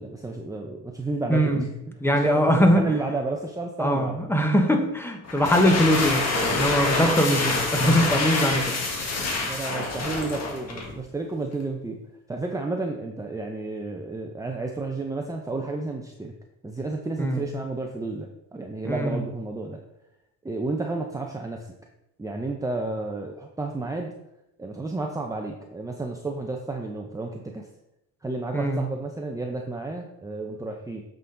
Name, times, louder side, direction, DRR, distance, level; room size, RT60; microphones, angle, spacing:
voice 1, 0.0-4.2 9.3-12.0 12.3-16.3 16.6-19.8 20.4-21.7 22.2-24.1 24.6-27.7 28.2-31.0, right 3 dB, 10° right, 2 dB, 0.6 m, -31 dB
voice 2, 1.3-1.6 2.0-2.8 3.8-8.7 17.2-17.5 18.8-19.2 28.5-28.8, equal, 10° left, 4 dB, 1.1 m, -22 dB
sound 1, 5.2-11.0, left 3 dB, 60° left, 1.5 m, -26 dB
8.0 x 3.9 x 3.9 m, 0.85 s
cardioid pair, 90°, 30 cm